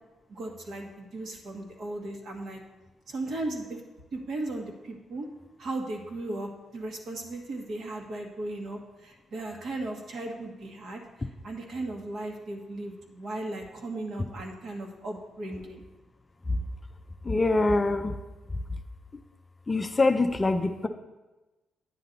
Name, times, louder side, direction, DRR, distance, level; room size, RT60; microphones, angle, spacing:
voice 1, 0.3-2.6 3.1-3.8 4.1-5.3 5.6-11.0 11.4-15.8, right 2 dB, 55° right, 1 dB, 1.6 m, -36 dB
voice 2, 17.3-18.2 19.7-20.9, left 2 dB, 15° left, 6 dB, 0.4 m, -24 dB
9.5 x 9.3 x 4.0 m, 1.1 s
cardioid pair, 150°, 0 cm